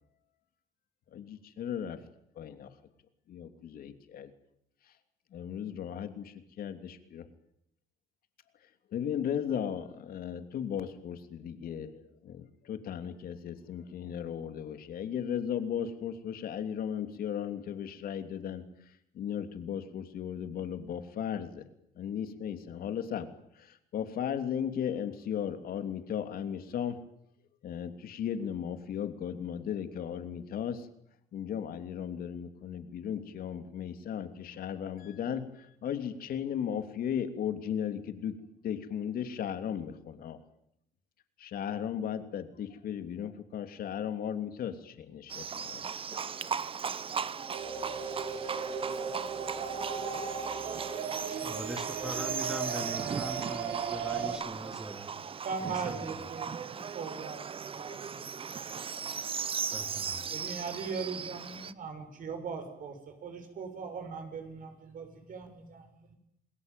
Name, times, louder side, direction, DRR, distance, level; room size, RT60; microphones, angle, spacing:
voice 1, 1.1-2.0 2.3-2.7 3.3-4.3 5.3-7.3 8.9-21.6 21.9-27.0 27.6-30.9 31.3-40.4 41.4-45.8, left 8 dB, 60° left, 9 dB, 3.1 m, -36 dB
Livestock farm animals working animals, 45.3-61.7, right 6 dB, 30° right, 1.0 m, -37 dB
sound 1, 47.5-54.4, right 6 dB, 80° right, 5.5 m, -36 dB
voice 2, 51.3-55.2 55.6-56.3 59.7-60.3, equal, 5° right, 9 dB, 2.6 m, -42 dB
voice 3, 55.4-56.5 56.9-59.1 60.3-66.2, right 5 dB, 55° right, 6 dB, 6.7 m, -40 dB
28.0 x 20.0 x 9.3 m, 0.77 s
cardioid pair, 110°, 17 cm